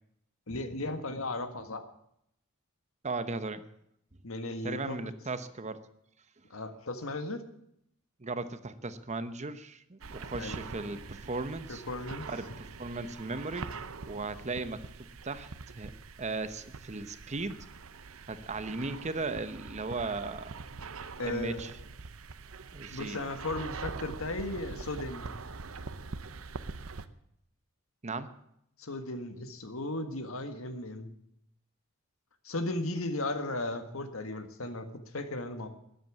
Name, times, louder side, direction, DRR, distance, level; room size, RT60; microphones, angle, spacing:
voice 1, 0.5-1.8 4.2-5.1 6.5-7.4 10.4-10.6 11.7-12.3 21.2-21.7 22.9-25.3 28.8-31.1 32.4-34.9 35.1-35.7, left 2 dB, 70° left, 8 dB, 1.7 m, -36 dB
voice 2, 3.0-3.6 4.6-5.8 8.2-11.8 12.3-13.7 14.1-14.8 15.2-15.9 16.2-17.7 18.3-20.5 21.2-21.7 22.7-23.2 28.0-28.3, right 3 dB, 35° right, 12 dB, 0.9 m, -37 dB
sound 1, 10.0-27.1, right 4 dB, 75° right, 0.8 m, -44 dB
13.0 x 11.0 x 8.5 m, 0.75 s
head